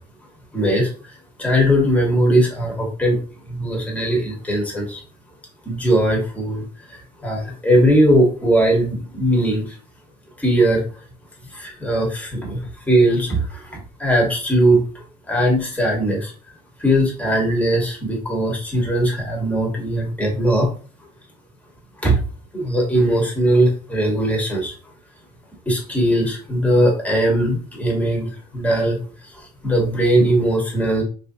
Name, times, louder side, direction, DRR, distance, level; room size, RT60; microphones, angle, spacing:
voice 1, 0.5-0.9 1.4-3.1 3.5-5.0 5.7-6.6 7.2-9.6 10.4-10.8 11.6-12.6 12.9-13.4 14.0-14.8 15.3-16.3 16.8-20.7 22.0-22.1 22.5-24.7 25.7-28.2 28.5-29.0 29.6-31.0, right 1 dB, 10° left, -1 dB, 1.3 m, -19 dB
3.2 x 2.6 x 2.7 m, 0.38 s
cardioid pair, 110°, 17 cm